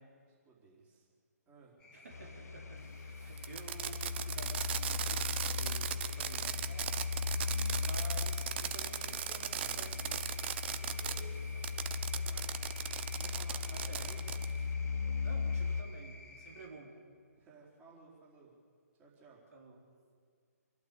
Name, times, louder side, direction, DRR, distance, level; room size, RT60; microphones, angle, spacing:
voice 1, 0.2-1.1 1.5-1.7 10.8-11.7 12.1-12.8 13.1-14.2 17.4-18.5 19.0-19.4, right 3 dB, 20° right, -4 dB, 4.5 m, -57 dB
sound 1, 1.8-16.7, left 2 dB, 10° left, 2.3 m, -55 dB
voice 2, 1.9-7.2 7.8-10.3 13.7-14.1 15.2-17.0 19.5-19.8, right 3 dB, 60° right, 0 dB, 3.7 m, -52 dB
sound 2, 2.1-15.8, left 5 dB, 65° left, 1.1 m, -38 dB
Fireworks, 3.4-11.2 11.6-14.5, right 10 dB, 40° right, 0.8 m, -38 dB
26.0 x 12.0 x 8.4 m, 2.1 s
figure-of-eight pair, 135°, 9 cm